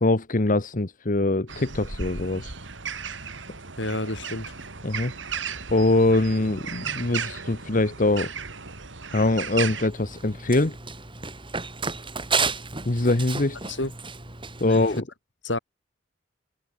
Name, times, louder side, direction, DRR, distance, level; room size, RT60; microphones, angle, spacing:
voice 1, 0.0-2.5 4.8-5.1 5.7-8.3 9.1-10.8 12.8-13.6 14.6-15.0, left 2 dB, 45° left, 1.2 m, -23 dB
sound 1, 1.5-9.9, right 6 dB, 90° right, 3.2 m, -35 dB
voice 2, 3.8-4.6 13.7-13.9 14.6-15.0 15.4-15.6, left 1 dB, 75° left, 7.6 m, -29 dB
Run, 9.8-15.0, right 4 dB, 30° right, 7.1 m, -32 dB
open air
head